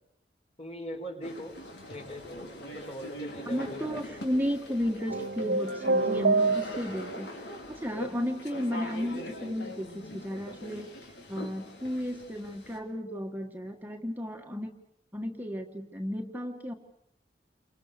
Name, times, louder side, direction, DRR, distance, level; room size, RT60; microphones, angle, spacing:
voice 1, 0.6-1.6 1.9-4.0, equal, 40° left, 4 dB, 4.7 m, -41 dB
sound 1, 1.2-12.8, equal, 80° left, 5.4 m, -43 dB
voice 2, 3.5-10.9 11.3-14.7 15.1-16.7, equal, 10° right, 3 dB, 1.6 m, -34 dB
sound 2, 5.1-7.1, right 3 dB, 80° right, 1.3 m, -26 dB
29.5 x 25.0 x 6.8 m, 0.73 s
head